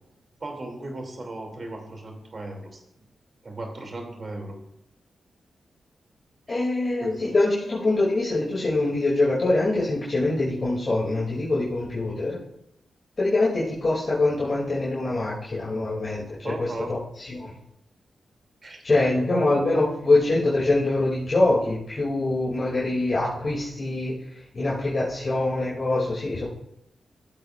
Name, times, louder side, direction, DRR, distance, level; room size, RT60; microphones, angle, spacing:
voice 1, 0.4-2.8 3.4-4.6 6.5-6.7 7.0-7.2 16.4-16.9 18.6-18.8 19.3-19.6, right 2 dB, 50° right, 2 dB, 2.8 m, -36 dB
voice 2, 6.5-12.4 13.2-17.5 18.8-26.4, left 2 dB, 45° left, -6 dB, 2.8 m, -24 dB
14.5 x 8.1 x 2.5 m, 0.80 s
cardioid pair, 50°, 0 cm